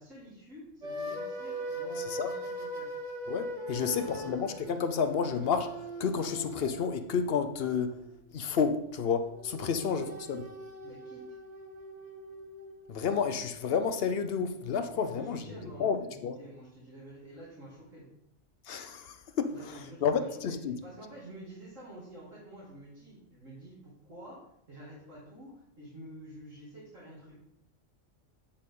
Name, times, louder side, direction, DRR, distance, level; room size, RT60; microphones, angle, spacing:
voice 1, 0.0-2.9 3.8-4.3 9.6-10.0 10.8-11.4 14.9-18.1 19.5-20.3 20.8-24.4 24.7-27.3, right 1 dB, 90° right, 2.6 m, -49 dB
sound 1, 0.8-8.2 9.3-15.4, equal, 35° right, 0.9 m, -41 dB
voice 2, 3.3-5.7 6.0-7.9 8.3-10.4 12.9-15.4 15.8-16.4 18.7-20.7, left 6 dB, 60° left, 0.8 m, -30 dB
7.5 x 6.7 x 3.7 m
omnidirectional pair, 1.3 m